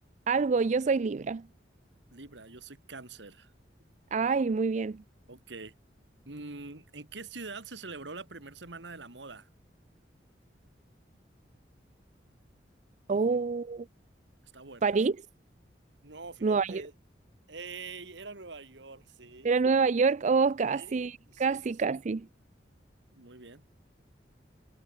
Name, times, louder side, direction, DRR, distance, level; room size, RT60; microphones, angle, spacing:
voice 1, 0.3-1.5 4.1-5.0 13.1-13.9 14.8-15.2 16.4-16.8 19.4-22.3, right 4 dB, 40° right, 0.4 m, -26 dB
voice 2, 2.1-3.5 5.3-5.7 6.3-9.5 13.1-13.4 14.5-15.0 16.0-16.9 17.5-19.5 20.6-22.0 23.1-23.6, right 3 dB, 80° right, 2.4 m, -45 dB
head